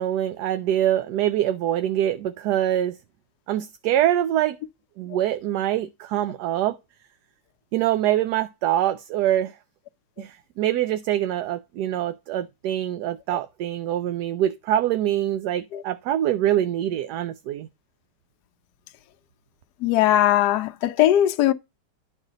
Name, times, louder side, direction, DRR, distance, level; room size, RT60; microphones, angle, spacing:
voice 1, 0.0-3.0 3.5-4.6 5.0-6.8 7.7-9.6 10.2-17.7, right 12 dB, 75° right, 1.1 m, -24 dB
voice 2, 19.8-21.5, left 12 dB, 75° left, 1.1 m, -19 dB
11.0 x 4.1 x 3.9 m
omnidirectional pair, 1.9 m